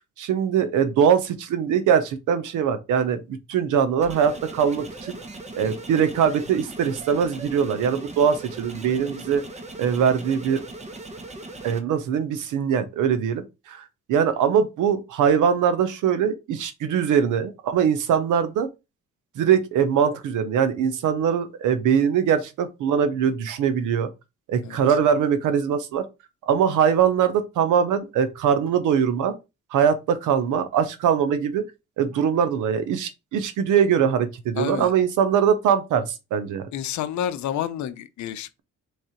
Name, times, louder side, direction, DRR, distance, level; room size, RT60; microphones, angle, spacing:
voice 1, 0.2-5.2 5.5-9.4 9.8-10.6 11.6-13.8 14.1-18.7 19.4-24.1 24.5-26.0 26.5-29.3 29.7-31.7 32.0-36.6, right 7 dB, 85° right, 0.8 m, -22 dB
sound 1, 4.0-11.8, right 2 dB, 25° right, 0.9 m, -39 dB
voice 2, 34.6-34.9 36.7-38.6, left 10 dB, 70° left, 0.6 m, -29 dB
3.6 x 3.3 x 4.3 m
cardioid pair, 90°, 30 cm